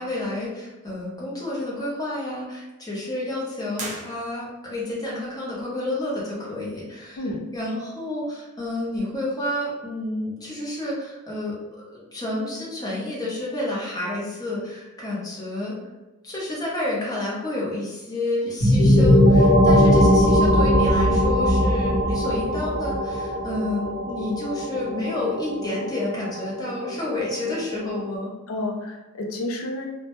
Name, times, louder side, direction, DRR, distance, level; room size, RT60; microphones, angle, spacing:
voice 1, 0.0-7.3 7.5-15.7 16.2-28.3, left 1 dB, 15° left, -5 dB, 0.6 m, -30 dB
sound 1, 3.7-4.8, right 2 dB, 35° right, 0.5 m, -37 dB
voice 2, 7.2-7.5 28.5-29.9, left 1 dB, 70° left, 2 dB, 0.5 m, -30 dB
sound 2, 18.6-28.2, equal, 50° left, 0.9 m, -20 dB
2.1 x 2.1 x 2.9 m, 1.1 s
head